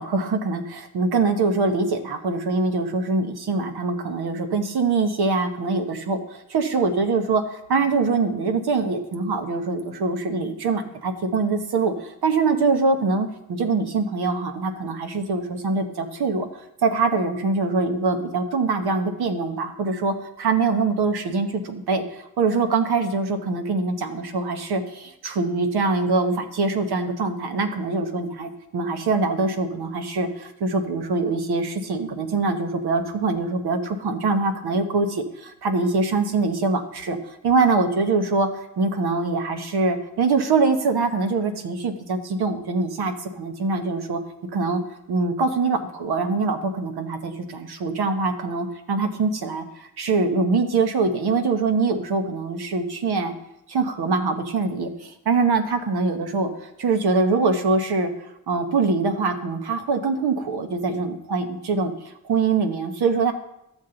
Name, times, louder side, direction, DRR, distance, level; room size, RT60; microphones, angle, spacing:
voice 1, 0.0-38.5 38.8-44.2 44.5-44.8 45.1-53.3 53.7-58.1 58.5-61.9 62.2-63.3, right 3 dB, 90° right, 7 dB, 1.1 m, -23 dB
12.5 x 7.3 x 3.9 m, 0.83 s
wide cardioid pair, 115°, 37 cm